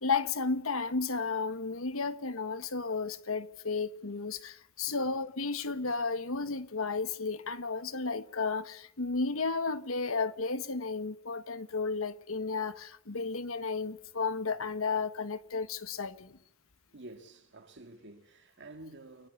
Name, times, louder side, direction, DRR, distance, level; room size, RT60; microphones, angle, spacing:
voice 1, 0.0-16.4, left 4 dB, 75° left, 1.4 m, -33 dB
voice 2, 16.9-19.3, right 2 dB, 60° right, 2.3 m, -50 dB
29.5 x 18.0 x 8.3 m
head